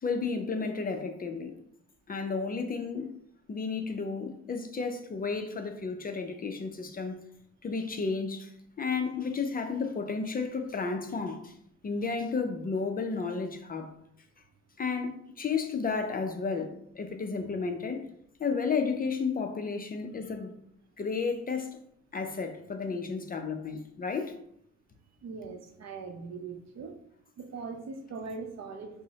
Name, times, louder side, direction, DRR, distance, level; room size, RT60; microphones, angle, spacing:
voice 1, 0.0-1.5 2.1-3.1 3.5-7.2 7.6-8.5 8.8-11.6 11.8-13.9 14.8-18.1 18.4-20.5 21.0-21.8 22.1-24.4, left 4 dB, 30° left, 0.5 m, -32 dB
voice 2, 25.2-26.9 27.4-29.0, right 4 dB, 60° right, 0.6 m, -40 dB
5.3 x 2.1 x 2.8 m
cardioid pair, 90°, 30 cm